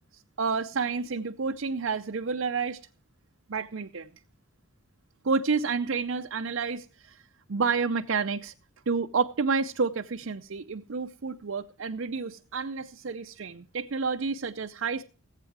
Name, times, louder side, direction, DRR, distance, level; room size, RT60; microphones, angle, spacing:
voice 1, 0.1-2.8 3.5-4.1 5.2-7.2 7.5-8.5 8.9-15.0, right 5 dB, 60° right, 0.6 m, -30 dB
18.5 x 8.3 x 4.7 m
head